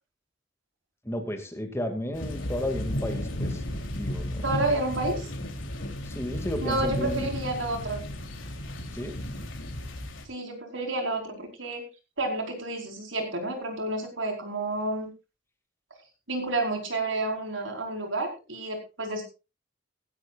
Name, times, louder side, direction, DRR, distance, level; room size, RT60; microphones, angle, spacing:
voice 1, 1.0-3.6 4.0-4.4 6.1-7.3 8.9-9.2, left 1 dB, 15° left, 6 dB, 2.3 m, -33 dB
sound 1, 2.1-10.3, left 1 dB, 80° left, 3.3 m, -34 dB
voice 2, 4.4-5.3 6.6-8.0 10.3-11.8 12.2-15.1 16.3-19.2, right 2 dB, 80° right, 3 dB, 4.8 m, -30 dB
16.5 x 16.0 x 2.5 m, 0.29 s
head